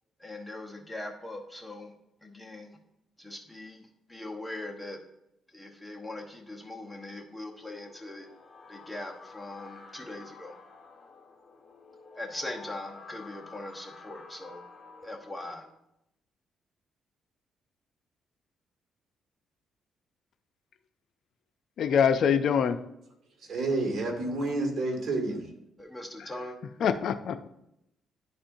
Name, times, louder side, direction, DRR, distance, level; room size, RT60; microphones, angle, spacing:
voice 1, 0.2-1.9 2.2-2.7 3.2-5.0 5.5-8.3 8.7-10.5 12.2-14.6 15.0-15.7 25.8-26.6, left 1 dB, 5° left, 2 dB, 1.0 m, -41 dB
sound 1, 7.7-15.7, left 4 dB, 30° left, 1.5 m, -50 dB
voice 2, 21.8-22.8 26.2-26.3 26.8-27.5, left 7 dB, 65° left, 10 dB, 0.4 m, -24 dB
voice 3, 23.4-25.5, right 2 dB, 55° right, 2 dB, 2.1 m, -29 dB
11.0 x 4.3 x 2.6 m, 0.81 s
cardioid pair, 90°, 0 cm